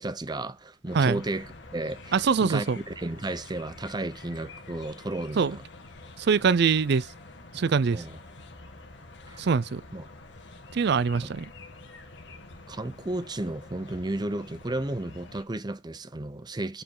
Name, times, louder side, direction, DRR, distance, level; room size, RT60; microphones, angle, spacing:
voice 1, 0.0-5.6 7.9-8.2 9.3-9.5 9.9-10.1 11.2-11.3 12.7-16.8, right 2 dB, 20° right, 0.7 m, -33 dB
sound 1, 0.9-15.4, left 2 dB, 65° left, 1.9 m, -47 dB
voice 2, 2.1-2.8 5.4-5.6 6.2-7.1 7.5-8.0 9.4-9.8 10.7-11.5, right 5 dB, 60° right, 0.5 m, -23 dB
8.7 x 4.6 x 3.8 m
head